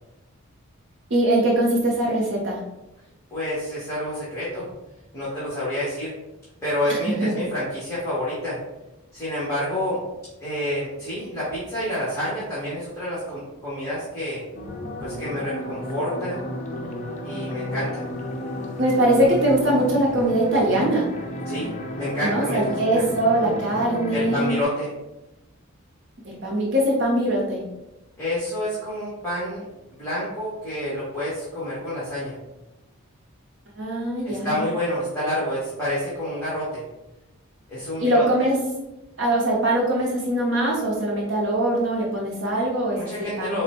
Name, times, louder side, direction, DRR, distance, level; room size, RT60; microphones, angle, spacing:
voice 1, 1.1-2.6 7.0-7.3 18.8-21.1 22.2-24.5 26.2-27.6 33.8-34.6 38.0-38.6 39.2-43.6, right 1 dB, 55° right, -3 dB, 0.7 m, -22 dB
voice 2, 3.3-4.7 5.1-6.1 6.6-8.6 9.1-10.0 10.4-14.4 15.0-16.4 17.2-18.0 21.4-23.0 24.1-24.9 28.2-29.6 30.0-32.4 34.2-36.8 37.7-38.2 42.9-43.6, left 1 dB, 10° left, -10 dB, 1.1 m, -28 dB
sound 1, 14.5-24.6, left 1 dB, 35° left, 0.5 m, -32 dB
4.2 x 2.1 x 4.1 m, 1.0 s
head